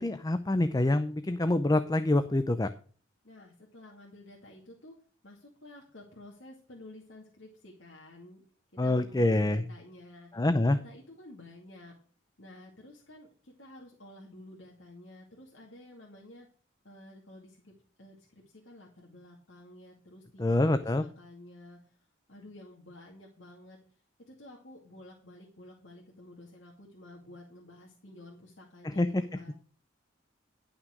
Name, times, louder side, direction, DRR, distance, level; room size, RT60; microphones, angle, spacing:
voice 1, 0.0-2.7 8.8-9.6 10.3-10.8 20.4-21.0 28.8-29.2, left 2 dB, 20° left, 10 dB, 0.5 m, -26 dB
voice 2, 3.2-4.9 5.2-8.4 8.8-11.9 12.4-16.5 16.8-17.7 18.0-22.0 22.3-23.8 24.3-29.5, left 1 dB, 75° left, -1 dB, 2.3 m, -51 dB
11.5 x 5.9 x 6.3 m, 0.41 s
head